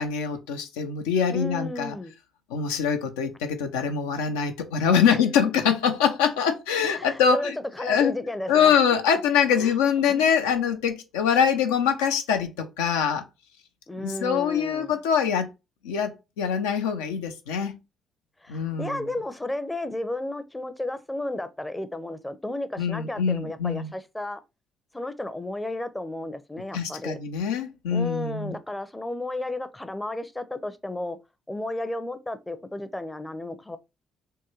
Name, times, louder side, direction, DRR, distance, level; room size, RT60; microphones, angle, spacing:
voice 1, 0.0-1.9 2.5-8.1 8.5-13.2 14.0-15.5 15.8-17.8 18.5-19.1 22.8-23.9 26.7-28.5, left 7 dB, 80° left, 0.5 m, -24 dB
voice 2, 1.3-2.1 5.0-5.2 6.8-8.8 9.6-9.8 10.1-10.2 13.9-15.0 18.4-24.4 24.9-27.2 27.9-31.2 31.5-33.8, left 1 dB, 15° left, 0.5 m, -33 dB
3.6 x 2.2 x 3.0 m
hypercardioid pair, 45°, 0 cm